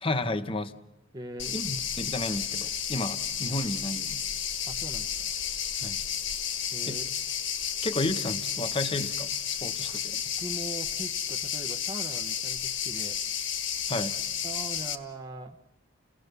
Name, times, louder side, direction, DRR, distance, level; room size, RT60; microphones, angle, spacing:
voice 1, 0.0-0.7 1.5-4.2 5.8-6.0 6.9-7.0 7.8-10.2 13.9-14.2, left 2 dB, 25° left, 9 dB, 0.9 m, -32 dB
voice 2, 1.1-1.6 4.7-5.3 6.7-7.1 10.4-13.2 14.4-15.6, right 1 dB, 20° right, 1 dB, 0.8 m, -41 dB
sound 1, 1.4-15.0, left 8 dB, 65° left, 1.3 m, -32 dB
29.0 x 17.5 x 6.7 m, 0.94 s
head